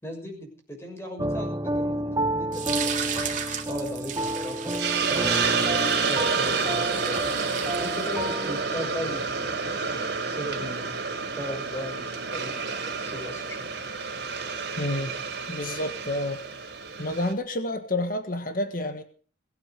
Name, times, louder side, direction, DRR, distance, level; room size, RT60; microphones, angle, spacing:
voice 1, 0.0-7.4 7.8-13.8, equal, 15° left, 3 dB, 6.4 m, -38 dB
sound 1, 1.2-8.6, right 1 dB, 20° right, 0.7 m, -30 dB
sound 2, 2.5-8.6, right 8 dB, 40° right, 3.5 m, -35 dB
Hiss, 4.8-17.3, right 5 dB, 60° right, 3.9 m, -29 dB
voice 2, 14.8-15.1 15.5-16.4 17.0-19.0, left 1 dB, 45° left, 8 dB, 1.6 m, -29 dB
22.5 x 9.2 x 6.6 m, 0.42 s
head